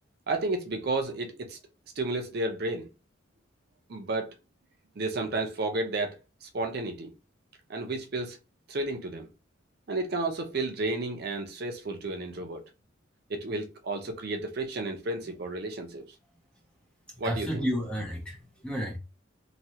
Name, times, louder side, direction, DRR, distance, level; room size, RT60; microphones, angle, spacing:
voice 1, 0.3-1.6 2.0-2.9 3.9-4.3 5.0-7.1 7.7-8.4 8.7-9.3 9.9-12.6 13.3-16.0 17.2-17.7, right 2 dB, 50° right, 0.5 m, -32 dB
voice 2, 17.2-19.0, equal, 5° left, 0.7 m, -31 dB
3.0 x 2.3 x 2.7 m
head